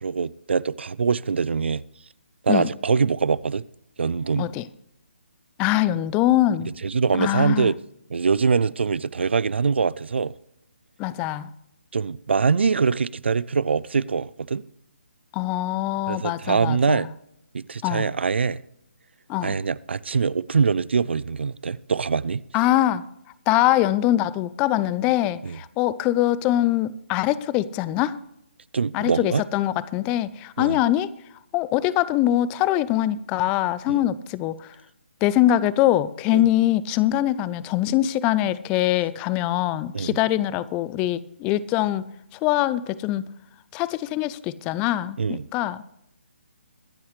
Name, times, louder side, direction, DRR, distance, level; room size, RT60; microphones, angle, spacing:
voice 1, 0.0-1.8 2.4-3.6 4.0-4.5 6.8-7.8 8.1-10.3 11.9-14.6 16.1-17.1 17.5-18.6 19.4-22.4 25.4-25.6 28.7-29.4 30.6-30.8 33.9-34.0 36.3-36.5 39.9-40.2 45.2-45.5, right 5 dB, 65° right, 0.4 m, -23 dB
voice 2, 5.6-6.7 7.1-7.7 11.0-11.5 15.3-17.1 17.8-18.1 19.3-19.6 22.5-23.0 23.5-28.2 28.9-31.1 31.5-34.7 35.2-42.1 42.4-43.2 43.7-45.8, left 13 dB, 15° left, 0.4 m, -23 dB
24.0 x 8.5 x 3.2 m
figure-of-eight pair, 145°, 6 cm